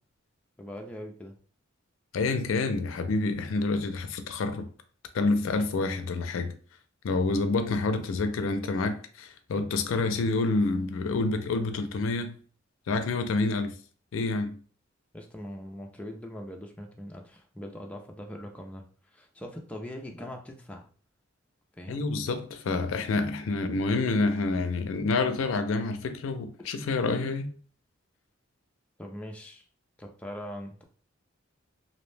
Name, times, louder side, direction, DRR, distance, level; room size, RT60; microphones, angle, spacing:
voice 1, 0.6-1.4 15.1-18.8 19.1-20.9 21.7-22.0 29.0-29.6 30.0-30.8, equal, 5° left, 0.3 m, -41 dB
voice 2, 2.1-4.7 5.1-6.5 7.0-12.4 12.9-13.7 14.1-14.6 21.9-27.5, left 3 dB, 80° left, 0.4 m, -28 dB
2.5 x 2.0 x 3.1 m
head